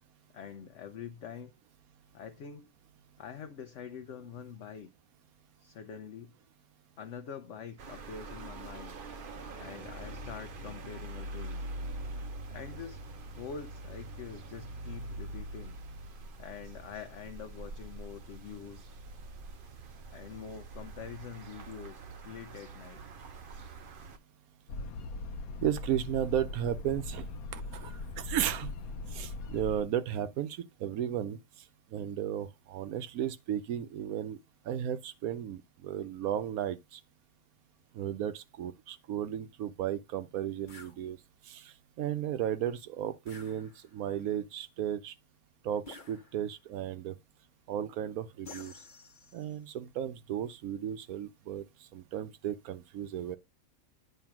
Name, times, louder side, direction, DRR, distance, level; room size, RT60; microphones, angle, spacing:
voice 1, 0.3-1.5 2.1-2.7 3.2-4.9 5.6-6.3 7.0-9.0 9.5-11.6 12.5-13.0 13.3-15.8 16.4-18.9 20.1-23.0, left 7 dB, 65° left, 0.9 m, -45 dB
sound 1, 7.8-24.2, right 2 dB, 50° right, 0.7 m, -44 dB
sound 2, 24.7-29.8, left 3 dB, 85° left, 1.2 m, -40 dB
voice 2, 25.6-27.3 27.5-28.7 29.1-31.4 31.9-34.4 34.7-37.0 37.9-41.2 41.5-45.1 45.6-47.1 47.7-48.7 49.3-51.6 51.9-53.4, right 10 dB, 85° right, 1.1 m, -34 dB
sound 3, 40.7-41.0 43.3-44.1 45.9-46.7 48.5-49.6, left 3 dB, 40° left, 1.0 m, -51 dB
9.1 x 3.3 x 5.8 m
omnidirectional pair, 1.5 m